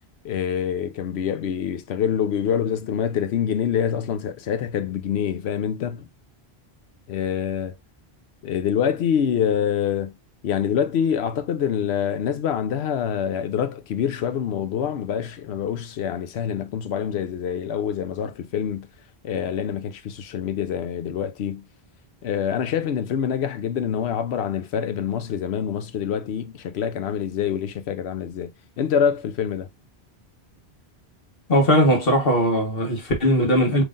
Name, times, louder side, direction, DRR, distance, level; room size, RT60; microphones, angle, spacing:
voice 1, 0.2-6.1 7.1-7.8 8.4-10.1 10.4-18.9 19.2-21.6 22.2-29.7, left 8 dB, 80° left, 0.9 m, -26 dB
voice 2, 31.5-33.8, equal, 60° left, 1.6 m, -19 dB
5.4 x 3.3 x 2.5 m
omnidirectional pair, 1.1 m